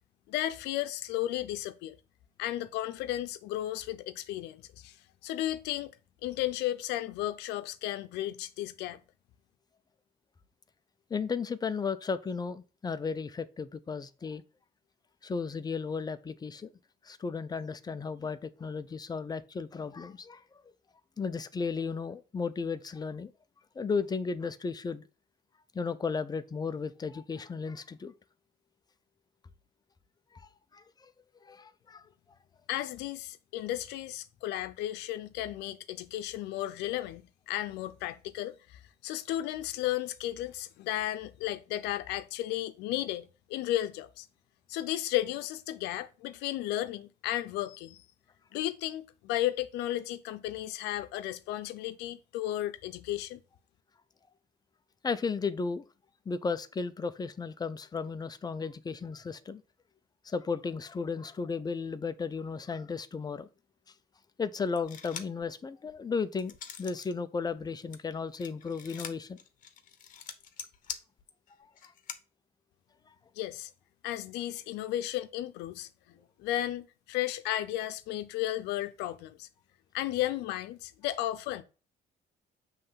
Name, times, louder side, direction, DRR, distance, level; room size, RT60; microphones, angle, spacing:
voice 1, 0.3-2.0 2.4-5.0 5.2-5.9 6.2-9.0 32.7-44.3 44.7-48.0 48.5-53.4 73.4-73.7 74.0-79.5 79.9-81.6, left 14 dB, 90° left, 0.7 m, -34 dB
voice 2, 11.1-14.4 15.2-16.7 17.0-20.4 21.2-23.3 23.8-25.0 25.7-28.1 30.3-31.1 31.4-32.0 55.0-55.8 56.3-59.6 60.2-63.5 64.4-69.4 71.8-71.9, left 5 dB, 25° left, 0.6 m, -34 dB
sound 1, 64.8-65.4 65.9-67.1 67.5-72.2, left 8 dB, 50° left, 1.0 m, -44 dB
7.6 x 3.3 x 5.7 m
cardioid pair, 110°, 17 cm